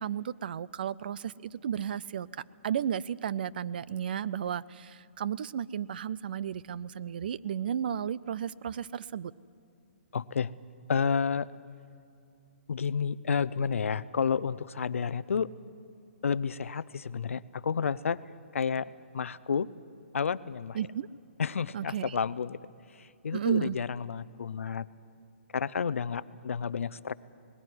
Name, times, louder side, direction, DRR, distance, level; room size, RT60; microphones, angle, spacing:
voice 1, 0.0-2.3 2.6-9.3 20.7-21.1 21.7-22.2 23.3-23.8, right 9 dB, 45° right, 19 dB, 0.4 m, -33 dB
voice 2, 10.1-10.5 10.9-11.5 12.7-15.5 16.2-18.2 18.5-19.7 20.1-20.8 21.4-22.6 23.0-24.9 25.5-27.1, left 6 dB, 85° left, 17 dB, 0.6 m, -30 dB
19.5 x 15.5 x 9.6 m, 2.6 s
hypercardioid pair, 165°, 7 cm